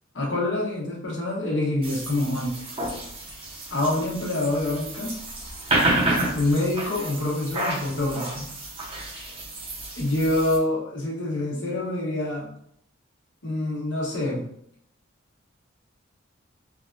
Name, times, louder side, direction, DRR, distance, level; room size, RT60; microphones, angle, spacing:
voice 1, 0.1-2.5 3.7-5.1 6.3-8.5 9.1-9.3 9.9-12.5 13.4-14.4, left 1 dB, 75° left, -4 dB, 1.1 m, -26 dB
sound 1, 1.8-10.6, right 1 dB, 30° right, 0.7 m, -30 dB
3.4 x 2.2 x 2.5 m, 0.68 s
head